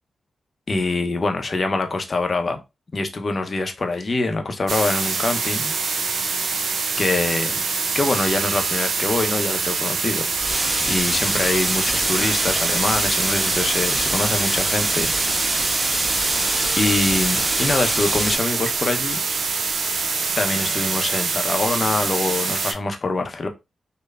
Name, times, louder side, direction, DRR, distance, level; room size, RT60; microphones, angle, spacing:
voice 1, 0.7-2.6 2.9-5.7 7.0-7.6 7.9-10.3 10.9-15.1 16.8-19.2 20.4-23.5, left 3 dB, 50° left, 0.6 m, -24 dB
sound 1, 4.7-22.7, right 4 dB, 70° right, 0.4 m, -24 dB
sound 2, 10.3-18.3, right 1 dB, 20° right, 1.1 m, -25 dB
3.1 x 2.0 x 2.3 m
supercardioid pair, 40°, 0 cm